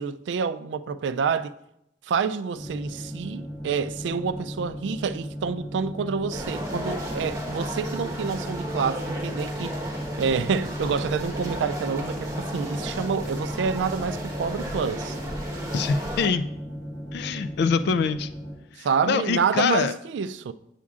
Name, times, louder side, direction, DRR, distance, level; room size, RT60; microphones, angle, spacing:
voice 1, 0.0-1.5 2.1-9.8 10.2-15.2 18.8-20.5, right 6 dB, 70° right, 0.3 m, -28 dB
sound 1, 2.5-18.5, equal, 20° left, 1.8 m, -36 dB
sound 2, 6.3-16.3, equal, 20° right, 1.1 m, -34 dB
voice 2, 15.7-16.4 17.1-18.3 18.8-19.9, left 5 dB, 65° left, 0.3 m, -24 dB
8.3 x 7.3 x 2.4 m
head